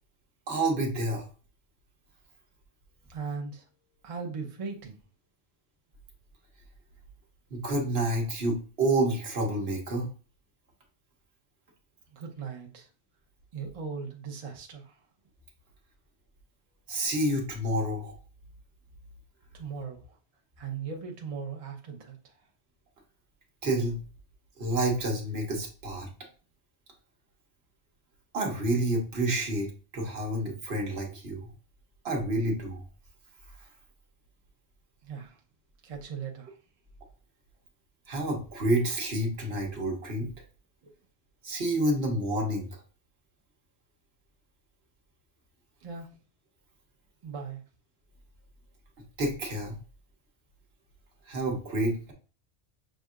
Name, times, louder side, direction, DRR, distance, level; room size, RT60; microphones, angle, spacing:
voice 1, 0.5-1.2 7.5-10.1 16.9-18.1 23.6-24.0 24.6-26.1 28.3-29.7 29.9-31.5 32.0-32.8 38.1-40.3 41.4-42.7 49.2-49.7 51.3-52.1, right 1 dB, 65° right, 1 dB, 1.2 m, -29 dB
voice 2, 3.1-3.6 4.0-5.0 12.1-12.9 13.5-14.9 19.5-20.0 20.6-22.2 35.0-35.4 35.8-36.5 40.8-40.9 45.8-46.1 47.2-47.6, right 5 dB, 35° right, 0 dB, 0.6 m, -38 dB
6.3 x 2.7 x 2.4 m, 0.37 s
omnidirectional pair, 1.1 m